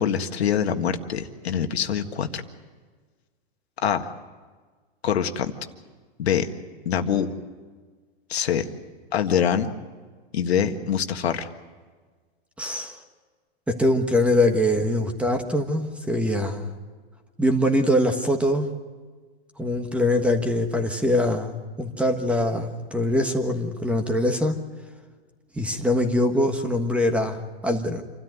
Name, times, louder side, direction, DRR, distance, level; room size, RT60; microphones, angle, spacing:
voice 1, 0.0-2.4 3.8-4.1 5.0-5.5 6.2-6.5 6.8-7.3 8.3-8.6 9.1-9.7 10.3-11.5, left 8 dB, 85° left, 6 dB, 1.7 m, -24 dB
voice 2, 12.6-13.0 13.7-16.7 17.4-18.7 19.6-24.6 25.5-28.0, left 1 dB, 5° right, 6 dB, 1.4 m, -23 dB
27.0 x 13.5 x 9.4 m, 1.5 s
hypercardioid pair, 140°, 31 cm